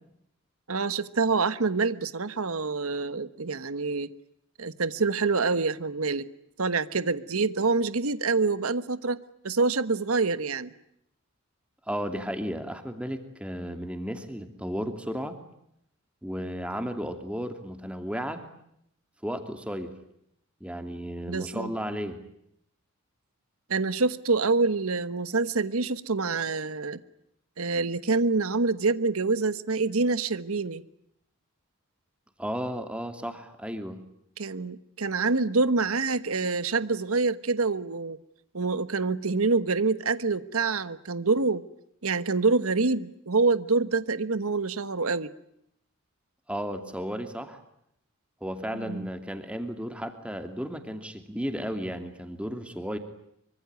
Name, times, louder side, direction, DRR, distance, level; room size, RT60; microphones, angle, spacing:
voice 1, 0.7-4.1 4.6-6.3 6.6-10.7 21.3-21.7 23.7-27.0 27.6-30.8 34.4-38.2 38.5-41.6 42.0-45.3 48.7-49.1, right 4 dB, 85° right, 14 dB, 1.3 m, -26 dB
voice 2, 11.9-15.4 16.2-18.4 19.2-19.9 20.6-22.2 32.4-34.0 46.5-47.6 48.4-53.0, equal, 5° right, 7 dB, 2.7 m, -34 dB
25.0 x 25.0 x 9.5 m, 0.75 s
head